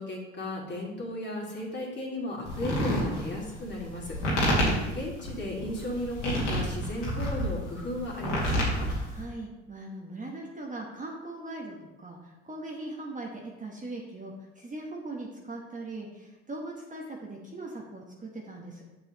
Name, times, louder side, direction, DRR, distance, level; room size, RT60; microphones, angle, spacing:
voice 1, 0.0-4.1 4.9-8.9, left 1 dB, 30° left, -3 dB, 2.6 m, -35 dB
sound 1, 2.4-9.2, equal, 90° left, 2.2 m, -29 dB
voice 2, 9.1-18.8, right 2 dB, 20° right, -1 dB, 1.3 m, -40 dB
7.1 x 6.9 x 3.1 m, 1.0 s
hypercardioid pair, 60°, 35 cm